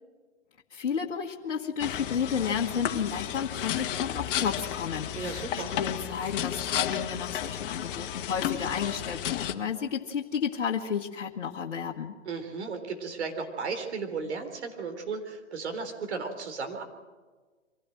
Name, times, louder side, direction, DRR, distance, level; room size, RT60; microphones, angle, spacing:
voice 1, 0.7-12.1, left 7 dB, 65° left, -1 dB, 1.6 m, -32 dB
sound 1, 1.8-9.5, left 10 dB, 50° left, 1.7 m, -33 dB
voice 2, 5.1-5.7 12.3-16.8, right 4 dB, 65° right, 6 dB, 3.9 m, -35 dB
24.5 x 16.5 x 7.7 m, 1.4 s
hypercardioid pair, 120°, 36 cm